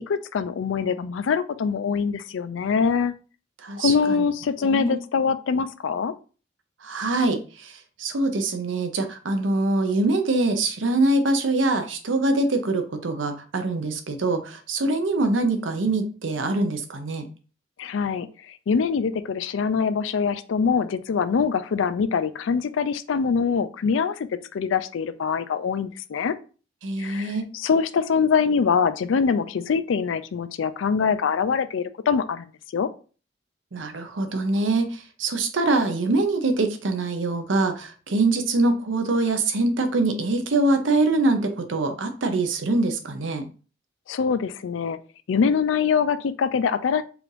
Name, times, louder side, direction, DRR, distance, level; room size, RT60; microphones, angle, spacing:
voice 1, 0.0-3.1 3.8-6.1 17.8-18.3 18.7-24.3 24.5-26.3 27.0-32.5 32.7-32.9 44.1-45.0 45.3-47.0, left 6 dB, 90° left, 13 dB, 0.4 m, -24 dB
voice 2, 3.6-3.9 4.6-5.0 6.8-17.3 26.8-27.5 33.7-43.5, right 2 dB, 90° right, 7 dB, 0.7 m, -24 dB
4.8 x 2.5 x 3.2 m, 0.37 s
head